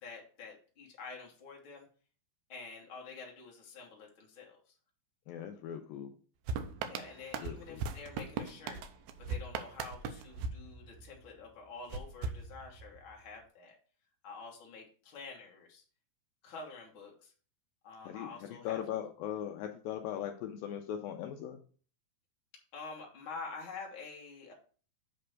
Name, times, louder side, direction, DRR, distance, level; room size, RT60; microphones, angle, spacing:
voice 1, 0.0-1.8 2.5-4.6 6.8-8.8 9.2-13.7 14.2-15.8 16.4-17.3 17.8-18.8 22.7-24.5, left 4 dB, 70° left, -1 dB, 1.2 m, -48 dB
voice 2, 5.3-6.1 7.4-7.8 18.0-21.6, left 10 dB, 85° left, 5 dB, 2.1 m, -39 dB
sound 1, 6.5-11.3 11.9-13.1, right 4 dB, 90° right, 1.9 m, -39 dB
7.8 x 3.3 x 6.4 m, 0.41 s
omnidirectional pair, 4.7 m